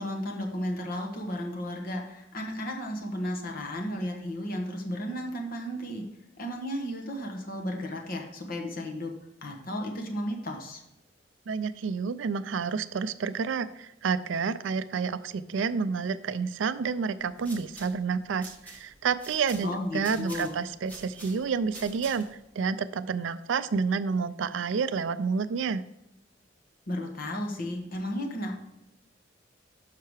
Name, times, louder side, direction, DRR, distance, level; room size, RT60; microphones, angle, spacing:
voice 1, 0.0-6.0 6.4-9.1 9.4-10.8 19.6-20.6 26.9-28.6, left 1 dB, 50° left, 2 dB, 1.1 m, -34 dB
voice 2, 11.5-22.2 22.6-25.8, right 5 dB, 75° right, 13 dB, 0.4 m, -29 dB
sound 1, 17.2-22.5, right 1 dB, 10° left, 1.2 m, -48 dB
6.7 x 5.7 x 4.7 m, 0.88 s
head